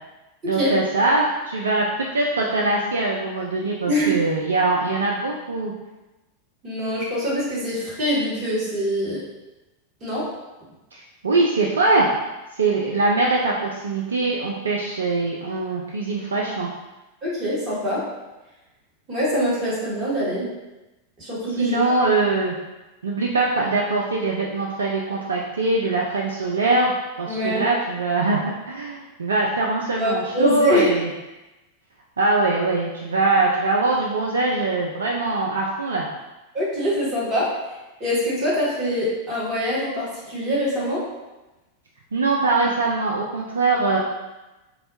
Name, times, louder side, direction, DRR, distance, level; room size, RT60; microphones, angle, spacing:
voice 1, 0.5-5.7 10.9-12.1 12.6-16.7 21.6-22.6 23.0-31.1 32.2-36.1 42.1-44.0, right 3 dB, 70° right, -1 dB, 0.3 m, -22 dB
voice 2, 6.6-9.2 10.0-10.2 17.2-18.0 19.1-20.5 21.2-21.8 27.3-27.7 30.0-30.8 36.5-37.5 38.0-41.0, equal, 30° right, -8 dB, 1.5 m, -24 dB
4.1 x 2.2 x 2.6 m, 1.1 s
figure-of-eight pair, 90°, 0 cm